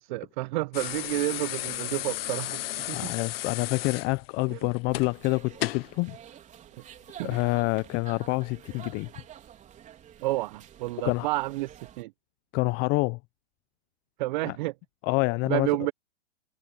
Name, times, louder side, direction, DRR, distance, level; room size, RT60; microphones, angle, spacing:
voice 1, 0.0-2.6 2.9-3.1 4.5-4.7 7.2-7.4 10.2-12.1 14.2-14.7 15.4-15.9, right 20 dB, 45° right, 0.9 m, -30 dB
sound 1, 0.7-5.9 7.3-7.4, left 14 dB, 60° left, 0.4 m, -34 dB
voice 2, 2.9-6.2 7.2-9.1 11.0-11.3 12.5-13.2 14.4-14.6 15.0-15.7, left 26 dB, 30° left, 0.9 m, -27 dB
sound 2, 4.9-12.0, right 10 dB, 20° right, 4.1 m, -49 dB
hypercardioid pair, 120°, 33 cm